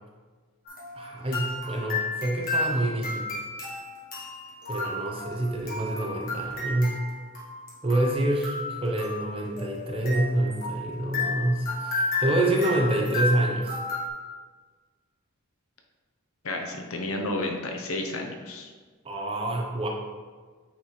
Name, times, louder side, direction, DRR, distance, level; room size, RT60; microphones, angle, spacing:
sound 1, 0.6-14.1, left 2 dB, 40° left, 1.5 m, -33 dB
voice 1, 1.0-3.4 4.7-7.0 7.8-13.8 19.0-19.9, right 1 dB, 25° right, 1 dB, 0.7 m, -27 dB
voice 2, 16.4-18.7, left 2 dB, 75° left, 3 dB, 0.8 m, -31 dB
8.5 x 4.2 x 3.2 m, 1.4 s
head